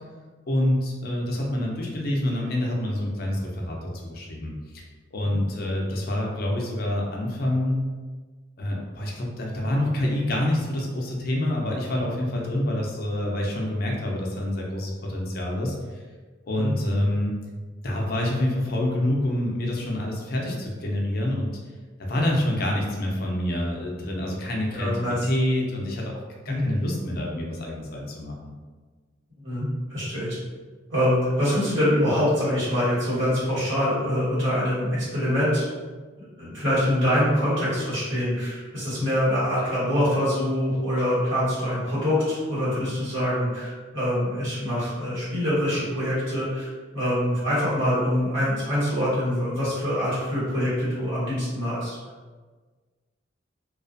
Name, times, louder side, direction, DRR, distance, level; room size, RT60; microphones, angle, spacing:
voice 1, 0.5-4.8 5.1-7.9 8.6-15.7 16.4-17.4 17.8-21.5 22.0-26.2 26.4-28.5, left 1 dB, 50° left, -1 dB, 0.5 m, -27 dB
voice 2, 24.7-25.3 26.5-26.6 29.4-30.3 30.9-35.7 36.2-52.0, equal, 80° right, -10 dB, 1.4 m, -25 dB
2.4 x 2.3 x 2.5 m, 1.4 s
head